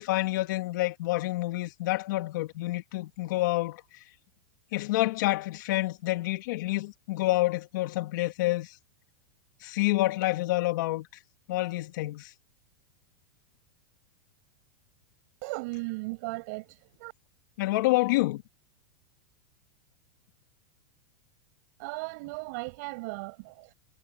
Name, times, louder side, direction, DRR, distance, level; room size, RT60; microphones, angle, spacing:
voice 1, 0.0-3.8 4.7-8.8 9.6-11.1 11.5-12.3 17.6-18.4, left 19 dB, 65° left, 2.4 m, -28 dB
voice 2, 15.4-17.1 21.8-23.7, right 27 dB, 55° right, 7.1 m, -37 dB
supercardioid pair, 130°, 11 cm